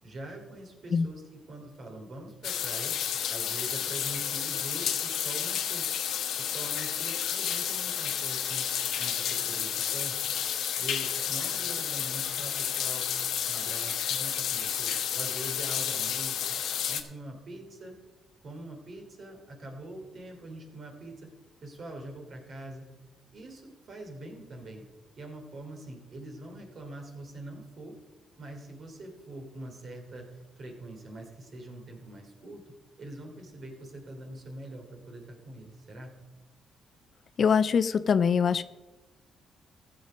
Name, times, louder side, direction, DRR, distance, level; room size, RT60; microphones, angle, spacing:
voice 1, 0.0-3.0 3.3-5.9 6.4-8.7 9.0-10.2 10.8-13.1 13.4-16.5 16.9-17.9 18.4-21.3 21.6-22.9 23.3-24.9 25.2-27.9 28.4-36.1, right 1 dB, 50° right, 3 dB, 3.0 m, -43 dB
sound 1, 2.4-17.0, left 9 dB, 75° left, 1.0 m, -31 dB
voice 2, 37.4-38.6, left 6 dB, 50° left, 15 dB, 0.4 m, -23 dB
15.0 x 7.0 x 5.1 m, 1.1 s
cardioid pair, 90°, 0 cm